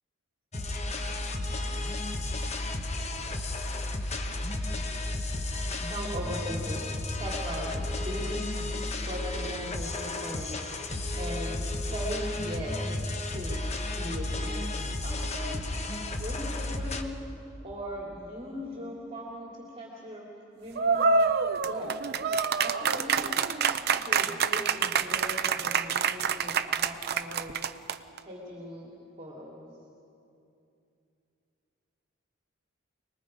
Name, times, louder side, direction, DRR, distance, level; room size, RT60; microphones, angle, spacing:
sound 1, 0.5-17.0, left 2 dB, 35° left, 1.1 m, -33 dB
voice 1, 5.8-6.8 7.1-8.6 9.0-10.7 10.9-11.6 11.9-12.8 13.3-15.6 16.1-17.2 17.6-20.3 20.6-21.1 21.7-21.9 22.6-23.4 24.0-27.7 28.2-28.9 29.2-29.7, equal, 30° right, -4 dB, 2.7 m, -39 dB
sound 2, 20.8-28.2, right 5 dB, 50° right, 0.6 m, -27 dB
27.0 x 20.5 x 5.1 m, 2.7 s
head